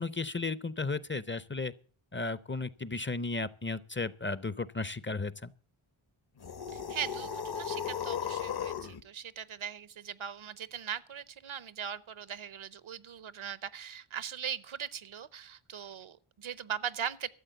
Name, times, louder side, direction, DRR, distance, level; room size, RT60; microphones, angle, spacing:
voice 1, 0.0-1.7 2.1-5.5, left 3 dB, 25° left, 0.5 m, -34 dB
sound 1, 6.4-9.0, left 7 dB, 50° left, 0.8 m, -36 dB
voice 2, 6.7-17.3, right 8 dB, 75° right, 0.8 m, -40 dB
13.0 x 7.5 x 7.9 m
wide cardioid pair, 85°, 49 cm